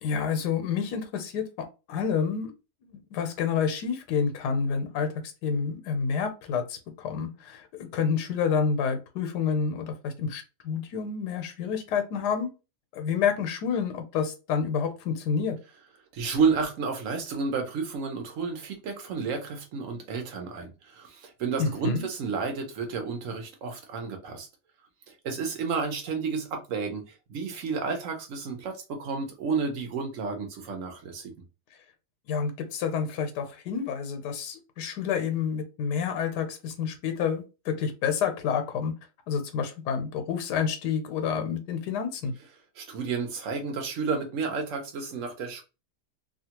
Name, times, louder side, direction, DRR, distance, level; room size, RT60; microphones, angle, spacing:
voice 1, 0.0-1.4 1.9-2.5 2.8-5.1 5.4-12.5 12.9-15.6 21.6-22.1 32.3-38.9 39.3-42.3, left 6 dB, 85° left, 1.2 m, -29 dB
voice 2, 16.1-24.5 25.1-27.0 27.3-31.3 42.8-45.6, right 5 dB, 60° right, 1.0 m, -31 dB
2.8 x 2.3 x 2.8 m
omnidirectional pair, 1.7 m